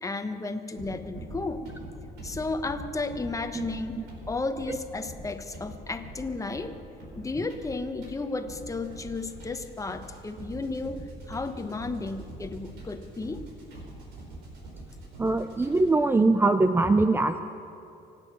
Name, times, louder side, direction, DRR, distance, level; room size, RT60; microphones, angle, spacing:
voice 1, 0.0-1.7 2.2-6.7 7.2-11.0 11.3-13.4, left 3 dB, 20° left, 8 dB, 1.0 m, -33 dB
sound 1, 0.8-16.0, right 1 dB, 90° right, 4.2 m, -44 dB
voice 2, 15.2-17.4, right 2 dB, 15° right, 9 dB, 0.5 m, -22 dB
25.0 x 8.8 x 6.2 m, 2.7 s
cardioid pair, 110°, 17 cm